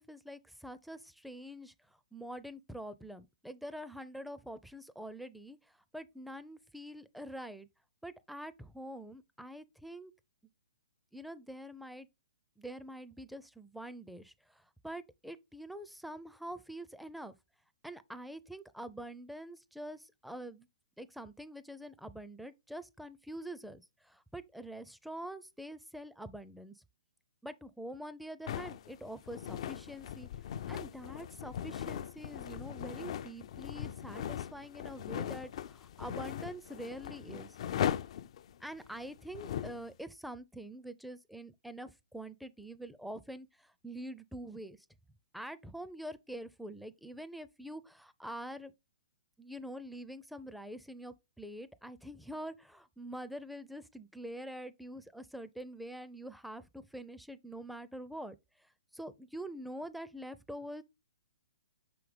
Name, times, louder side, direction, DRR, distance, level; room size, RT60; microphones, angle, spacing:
voice 1, 0.0-1.7 2.1-5.6 5.9-7.7 8.0-10.1 11.1-12.1 12.6-17.4 17.8-20.7 21.0-26.8 27.4-30.3 30.7-37.6 38.6-44.8 45.3-48.7 49.4-58.4 58.9-60.8, right 1 dB, ahead, 0.5 m, -45 dB
sound 1, 28.5-39.8, left 9 dB, 55° left, 0.4 m, -39 dB
5.7 x 5.0 x 3.3 m
hypercardioid pair, 130°, 4 cm